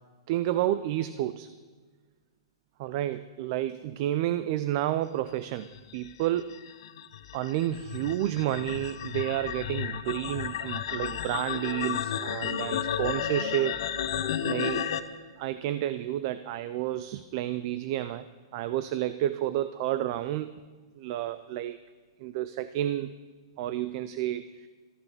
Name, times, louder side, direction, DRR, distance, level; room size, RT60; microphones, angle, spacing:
voice 1, 0.3-1.5 2.8-5.7 5.9-6.5 7.3-13.9 14.4-14.9 15.4-18.3 18.5-20.6 21.0-21.8 22.2-23.1 23.6-24.7, right 13 dB, 45° right, 13 dB, 0.5 m, -30 dB
sound 1, 5.7-15.0, left 9 dB, 65° left, 1.0 m, -33 dB
14.0 x 12.0 x 6.8 m, 1.4 s
hypercardioid pair, 150°, 3 cm